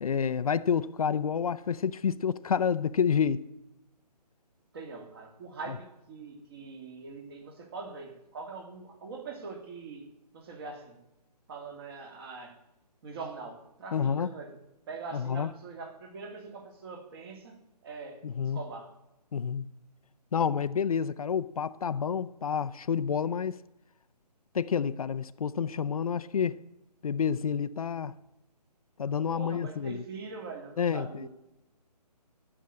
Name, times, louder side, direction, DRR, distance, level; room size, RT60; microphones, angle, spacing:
voice 1, 0.0-3.4 5.7-5.8 13.9-14.3 15.1-15.5 18.2-18.6 19.3-19.7 20.3-23.6 24.5-26.6 27.0-28.1 29.0-30.0 30.8-31.3, left 7 dB, 60° left, 0.6 m, -29 dB
voice 2, 4.7-10.1 10.3-11.0 11.5-12.5 13.0-14.6 14.9-18.2 18.5-18.9 29.3-31.3, right 4 dB, 35° right, 2.3 m, -43 dB
12.5 x 7.0 x 8.6 m
hypercardioid pair, 155°, 21 cm